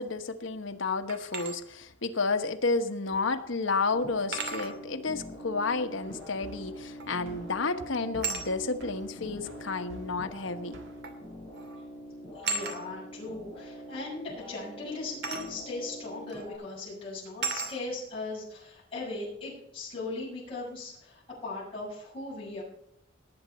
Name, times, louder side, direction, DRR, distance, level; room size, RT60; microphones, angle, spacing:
voice 1, 0.0-10.8, left 3 dB, 90° left, 7 dB, 1.2 m, -31 dB
sound 1, 1.1-1.5 3.1-3.2 4.3-4.8 7.0-7.3 8.2-8.5 9.7-9.8 11.0-11.2 11.5-11.8 12.4-12.8 15.2-15.5 16.3-16.4 17.4-17.8, right 4 dB, 55° right, 2.6 m, -34 dB
sound 2, 3.9-16.6, equal, 5° left, 6.0 m, -44 dB
sound 3, 6.0-11.0, equal, 75° right, 1.9 m, -51 dB
voice 2, 12.3-22.6, left 3 dB, 30° left, -7 dB, 6.7 m, -38 dB
19.0 x 8.8 x 4.3 m, 0.79 s
head